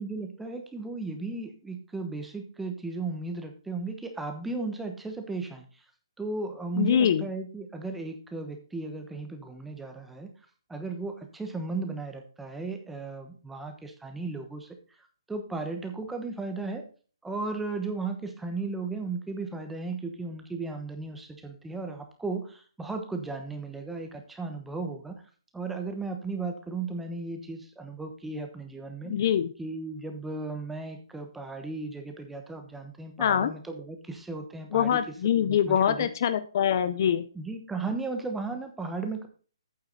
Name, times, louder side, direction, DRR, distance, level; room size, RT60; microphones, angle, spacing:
voice 1, 0.0-5.7 6.2-10.3 10.7-14.7 15.3-16.9 17.2-25.2 25.5-29.2 29.6-35.0 35.4-36.1 37.3-39.3, right 3 dB, 5° right, 5 dB, 1.1 m, -35 dB
voice 2, 6.8-7.3 29.0-29.5 33.2-33.5 34.7-37.2, left 9 dB, 40° left, 13 dB, 0.6 m, -24 dB
8.7 x 8.0 x 4.0 m, 0.40 s
hypercardioid pair, 160°, 3 cm